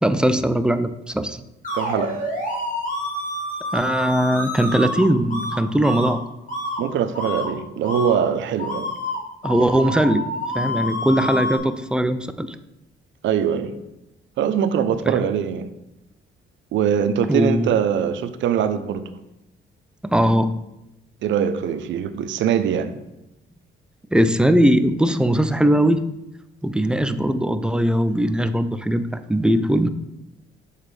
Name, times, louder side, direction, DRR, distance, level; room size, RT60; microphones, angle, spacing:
voice 1, 0.0-1.4 3.7-6.2 9.4-10.3 10.5-12.6 15.1-15.3 17.3-17.7 20.0-20.5 24.1-26.1 26.6-29.9, equal, 5° right, 11 dB, 0.3 m, -20 dB
sound 1, 1.6-5.0 5.3-5.5 5.8-6.1 6.5-6.8 7.1-7.5 7.8-8.1 8.6-11.6, left 1 dB, 40° left, 1.8 m, -28 dB
voice 2, 1.7-2.3 6.8-8.9 13.2-13.8 14.4-15.7 16.7-19.1 21.2-22.9, right 8 dB, 70° right, 11 dB, 0.5 m, -22 dB
7.2 x 4.0 x 3.2 m, 0.92 s
cardioid pair, 90°, 20 cm